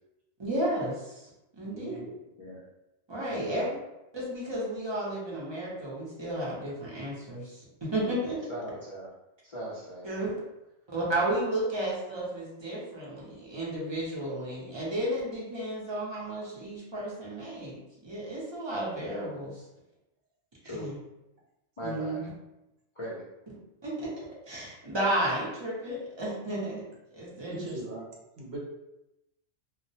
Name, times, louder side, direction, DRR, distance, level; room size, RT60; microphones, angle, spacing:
voice 1, 0.4-2.0 3.1-3.6 4.1-8.4 10.0-10.3 10.9-19.6 20.7-20.9 21.8-22.3 23.8-24.1 24.5-26.8 27.1-27.8, right 1 dB, 30° right, -6 dB, 0.5 m, -33 dB
voice 2, 1.6-2.2 27.5-28.1 28.4-28.6, right 2 dB, 65° right, -3 dB, 0.8 m, -39 dB
voice 3, 3.3-3.7 8.5-9.1 9.4-10.1 20.6-20.9 21.8-22.2 23.0-23.2, equal, 50° left, -8 dB, 0.4 m, -38 dB
2.2 x 2.0 x 2.7 m, 0.93 s
omnidirectional pair, 1.2 m